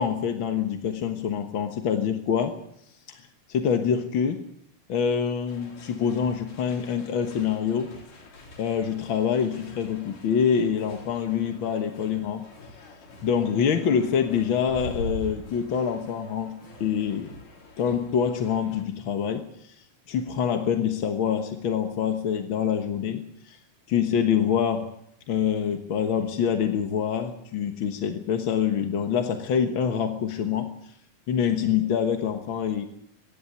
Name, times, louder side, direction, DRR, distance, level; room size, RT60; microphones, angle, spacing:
voice 1, 0.0-2.5 3.1-3.2 3.5-4.5 4.9-8.0 8.6-12.4 13.2-17.3 17.8-23.6 23.9-24.9 25.3-30.8 31.3-32.8, left 7 dB, 55° left, 6 dB, 1.6 m, -26 dB
sound 1, 5.5-18.8, left 1 dB, 85° left, 5.5 m, -44 dB
24.5 x 11.0 x 9.8 m, 0.72 s
omnidirectional pair, 3.7 m